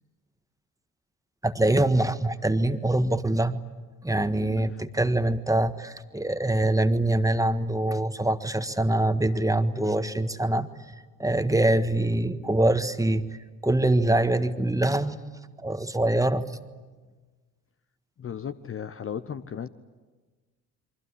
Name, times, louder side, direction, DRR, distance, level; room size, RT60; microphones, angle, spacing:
voice 1, 1.4-3.6 4.0-10.7 11.2-13.3 13.6-15.2 15.6-16.4, right 1 dB, 10° right, 10 dB, 1.5 m, -24 dB
voice 2, 18.2-19.7, left 8 dB, 30° left, 11 dB, 0.9 m, -35 dB
28.0 x 24.0 x 8.5 m, 1.3 s
figure-of-eight pair, 50°, 42 cm